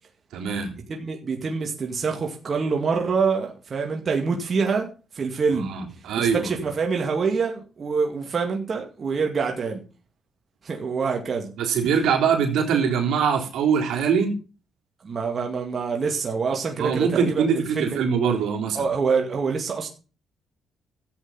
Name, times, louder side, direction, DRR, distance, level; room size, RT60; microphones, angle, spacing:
voice 1, 0.3-0.7 5.5-6.6 11.6-14.4 16.8-18.9, right 6 dB, 80° right, 3.6 m, -23 dB
voice 2, 0.9-4.9 5.1-5.7 6.2-9.8 10.6-11.5 15.0-17.5 17.8-18.0 18.7-19.9, right 5 dB, 40° right, 2.2 m, -25 dB
13.0 x 8.5 x 5.7 m
cardioid pair, 90°, 0 cm